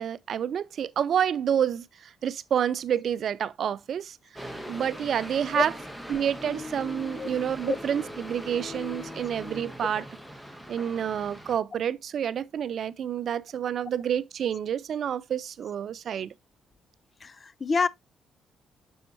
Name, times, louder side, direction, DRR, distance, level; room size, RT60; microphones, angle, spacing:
voice 1, 0.0-5.7 6.1-10.0 10.7-16.3, right 9 dB, 60° right, 0.5 m, -29 dB
sound 1, 4.4-11.6, left 1 dB, 5° left, 1.2 m, -40 dB
voice 2, 17.2-17.9, left 4 dB, 35° left, 0.4 m, -27 dB
7.5 x 6.3 x 2.6 m
cardioid pair, 90°, 0 cm